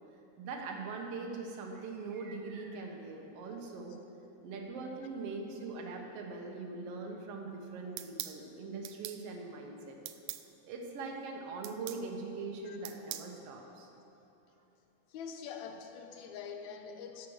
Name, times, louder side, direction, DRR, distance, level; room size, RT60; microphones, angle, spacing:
voice 1, 0.4-4.0 4.4-10.0 10.6-13.9, right 3 dB, 60° right, 2 dB, 1.9 m, -42 dB
sound 1, 8.0-8.4 8.8-9.2 10.1-10.4 11.6-12.0 12.8-13.3, right 14 dB, 80° right, 1.9 m, -41 dB
voice 2, 15.1-17.3, left 6 dB, 75° left, 5 dB, 2.1 m, -44 dB
11.0 x 7.3 x 6.5 m, 2.9 s
omnidirectional pair, 3.4 m